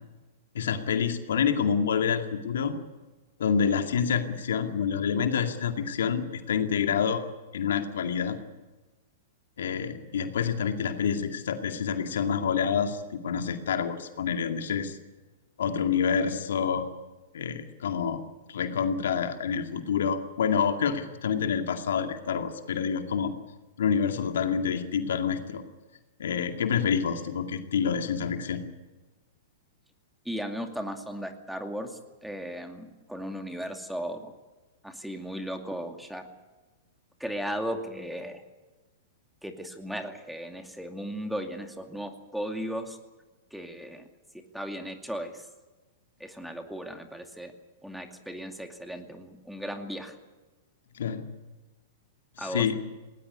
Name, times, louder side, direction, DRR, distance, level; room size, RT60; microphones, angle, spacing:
voice 1, 0.5-2.7 3.4-7.2 7.5-8.4 9.6-15.0 15.6-16.8 17.3-18.2 18.5-23.3 23.8-25.6 26.2-28.6 50.9-51.2 52.4-52.7, left 7 dB, 70° left, 6 dB, 2.2 m, -27 dB
voice 2, 30.3-34.3 34.8-36.2 37.2-38.4 39.4-43.0 43.5-44.1 44.5-45.5 46.2-47.5 47.8-50.2 52.4-52.7, equal, ahead, 5 dB, 2.4 m, -36 dB
19.0 x 19.0 x 9.6 m, 1.2 s
hypercardioid pair, 110°, 0 cm